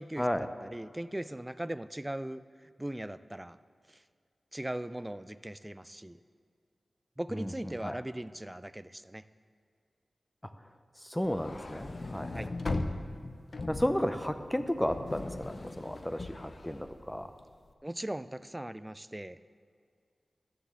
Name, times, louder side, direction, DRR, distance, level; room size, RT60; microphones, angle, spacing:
voice 1, 0.0-2.4 2.8-3.6 4.5-6.2 7.2-9.2 12.3-12.5 17.8-19.4, right 1 dB, 15° right, 14 dB, 0.4 m, -39 dB
voice 2, 11.0-12.4 13.7-17.3, equal, 10° left, 9 dB, 0.7 m, -33 dB
sound 1, 11.2-17.6, left 2 dB, 55° left, 0.7 m, -39 dB
11.5 x 7.0 x 7.4 m, 2.2 s
wide cardioid pair, 70°, 0 cm